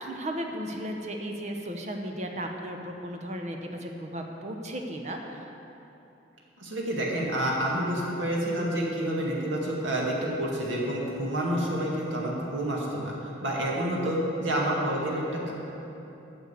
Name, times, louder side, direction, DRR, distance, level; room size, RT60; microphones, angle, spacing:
voice 1, 0.0-5.4, equal, 35° right, 3 dB, 0.9 m, -35 dB
voice 2, 6.6-15.5, right 1 dB, 85° right, -3 dB, 2.1 m, -29 dB
9.2 x 6.5 x 8.2 m, 3.0 s
head